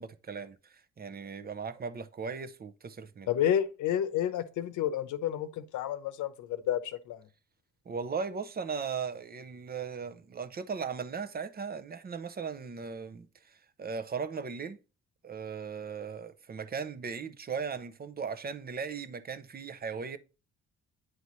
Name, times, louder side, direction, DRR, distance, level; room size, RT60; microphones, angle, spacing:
voice 1, 0.0-3.3 7.9-14.8 15.2-20.2, right 5 dB, 30° right, 0.6 m, -38 dB
voice 2, 3.3-7.2, left 10 dB, 80° left, 0.8 m, -30 dB
9.4 x 4.1 x 3.1 m
cardioid pair, 90°, 30 cm